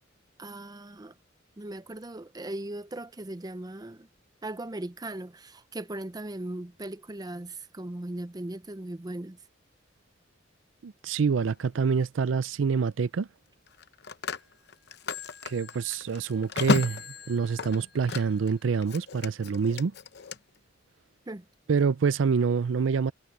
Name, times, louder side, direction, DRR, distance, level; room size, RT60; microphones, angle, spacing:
voice 1, 0.4-1.1 1.6-4.1 4.4-9.4 21.3-21.4, right 1 dB, 20° right, 0.6 m, -38 dB
voice 2, 10.8-13.3 15.4-19.9 21.7-23.1, right 5 dB, 80° right, 0.4 m, -26 dB
Telephone, 11.5-11.7 13.7-18.5 18.8-20.4, left 4 dB, 60° left, 0.8 m, -33 dB
head